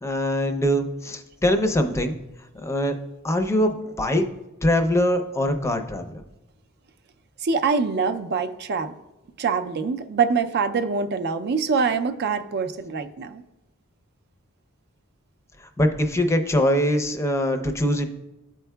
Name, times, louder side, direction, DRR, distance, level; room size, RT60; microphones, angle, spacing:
voice 1, 0.0-2.2 2.6-2.9 3.2-4.3 4.6-6.2 15.8-18.1, equal, 15° left, 6 dB, 0.5 m, -22 dB
voice 2, 7.4-9.0 9.4-13.4, right 5 dB, 50° right, 9 dB, 0.4 m, -24 dB
12.5 x 4.5 x 2.2 m, 0.98 s
head